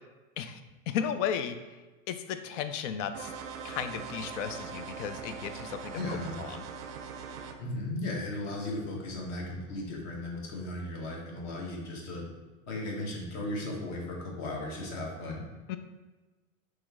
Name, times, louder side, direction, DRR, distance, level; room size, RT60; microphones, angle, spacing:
voice 1, 0.9-1.6 2.1-3.3 3.6-6.6 15.7-15.8, left 8 dB, 60° left, 10 dB, 0.5 m, -34 dB
sound 1, 3.1-7.5, right 6 dB, 50° right, 0.4 m, -41 dB
voice 2, 5.9-6.4 7.6-12.2 12.7-15.4, left 1 dB, 40° left, -1 dB, 1.1 m, -36 dB
3.1 x 3.0 x 3.5 m, 1.2 s
hypercardioid pair, 125°, 41 cm